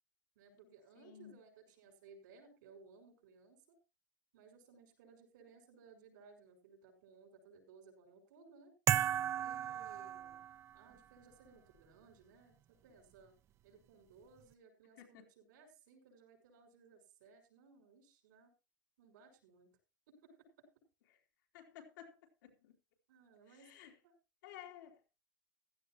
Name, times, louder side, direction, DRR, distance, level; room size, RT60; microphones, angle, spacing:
voice 1, 0.3-3.8 4.3-8.7 9.4-10.4 10.7-12.6 12.8-13.3 13.6-18.5 19.0-19.7 20.1-20.4 23.1-24.1, right 4 dB, 85° right, 6.2 m, -61 dB
voice 2, 1.0-1.3 15.0-15.2 21.5-22.1 22.6-22.7 23.7-23.9 24.4-25.0, left 10 dB, 90° left, 3.4 m, -53 dB
sound 1, 8.9-10.8, right 11 dB, 25° right, 0.5 m, -35 dB
16.0 x 13.0 x 3.0 m
supercardioid pair, 155°, 10 cm